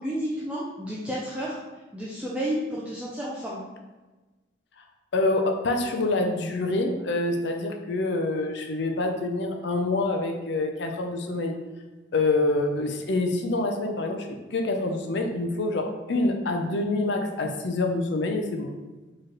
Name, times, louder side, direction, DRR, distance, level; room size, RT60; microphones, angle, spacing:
voice 1, 0.0-1.6 1.9-3.6, equal, 5° right, -6 dB, 0.4 m, -31 dB
voice 2, 5.1-11.5 12.1-18.7, left 2 dB, 60° left, 4 dB, 0.5 m, -26 dB
4.7 x 3.1 x 2.9 m, 1.2 s
head